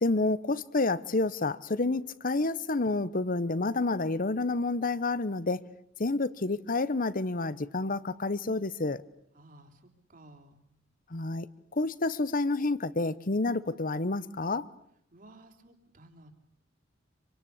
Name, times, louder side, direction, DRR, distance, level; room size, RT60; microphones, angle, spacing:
voice 1, 0.0-5.6 6.0-9.0 11.1-11.5 11.7-14.7, left 2 dB, 45° left, 1.0 m, -29 dB
voice 2, 9.3-10.6 15.1-16.3, right 1 dB, 45° right, 3.8 m, -55 dB
26.5 x 25.0 x 8.5 m
head